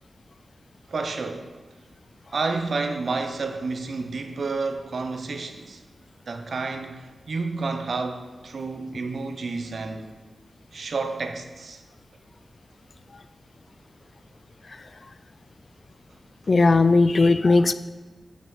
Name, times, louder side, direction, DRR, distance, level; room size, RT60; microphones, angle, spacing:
voice 1, 0.9-1.5 2.3-5.8 6.3-10.1 10.7-11.8, right 3 dB, 65° right, 0.7 m, -30 dB
voice 2, 16.5-17.7, left 3 dB, 45° left, 0.3 m, -17 dB
6.0 x 5.6 x 6.3 m
wide cardioid pair, 90°, 0 cm